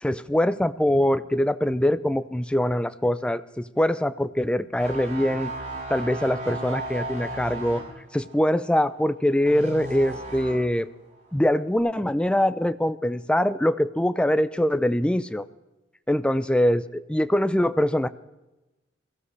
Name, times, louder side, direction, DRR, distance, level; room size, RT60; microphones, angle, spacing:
voice 1, 0.0-5.5 5.9-7.8 8.1-10.9 11.3-15.5 16.1-18.1, left 1 dB, 5° left, 13 dB, 0.4 m, -23 dB
sound 1, 4.8-10.8 11.1-11.4, right 1 dB, 35° right, 6.2 m, -36 dB
22.0 x 15.0 x 3.3 m, 1.0 s
head